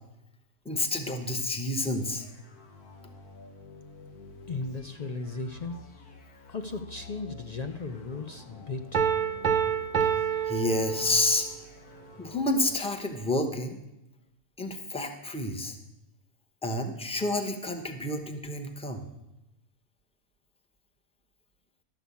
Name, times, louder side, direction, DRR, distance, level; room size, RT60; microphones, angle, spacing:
voice 1, 0.6-2.2 10.4-11.5 12.2-13.8 14.6-15.8 16.6-19.1, left 2 dB, 5° left, 5 dB, 0.8 m, -29 dB
sound 1, 1.8-12.9, left 3 dB, 85° left, 1.7 m, -50 dB
voice 2, 4.5-5.8 6.5-9.1, left 3 dB, 60° left, 6 dB, 0.4 m, -36 dB
Piano, 8.9-11.5, right 7 dB, 45° right, 0.6 m, -27 dB
12.0 x 6.0 x 8.3 m, 0.92 s
omnidirectional pair, 1.5 m